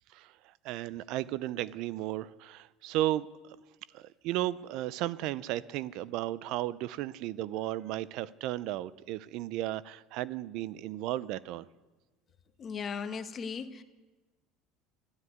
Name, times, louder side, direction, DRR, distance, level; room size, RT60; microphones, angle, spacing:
voice 1, 0.1-3.6 3.9-11.7, right 14 dB, 65° right, 0.5 m, -34 dB
voice 2, 12.6-13.8, left 6 dB, 35° left, 1.2 m, -37 dB
13.0 x 12.0 x 9.3 m
supercardioid pair, 120°, 0 cm